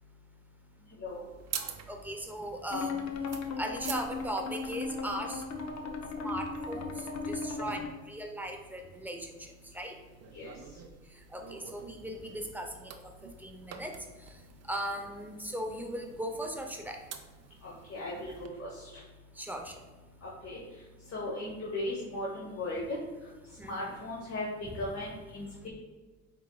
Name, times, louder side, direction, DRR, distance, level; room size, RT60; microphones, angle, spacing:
sound 1, 1.1-18.5, right 7 dB, 55° right, 0.5 m, -48 dB
voice 1, 1.9-3.1 3.6-5.4 6.2-7.8 8.1-10.0 11.3-12.9 13.2-14.0 14.3-14.4 14.7-17.0 19.4-19.8 23.6-24.0 24.6-24.8, right 1 dB, 5° right, 3 dB, 0.5 m, -38 dB
sound 2, 2.7-7.9, left 4 dB, 65° left, 0.6 m, -36 dB
voice 2, 17.6-18.3 18.6-18.7 20.4-20.6 21.1-22.8 23.7-24.5 24.8-25.7, left 2 dB, 50° left, -4 dB, 1.0 m, -37 dB
4.4 x 3.9 x 2.2 m, 1.3 s
cardioid pair, 90°, 30 cm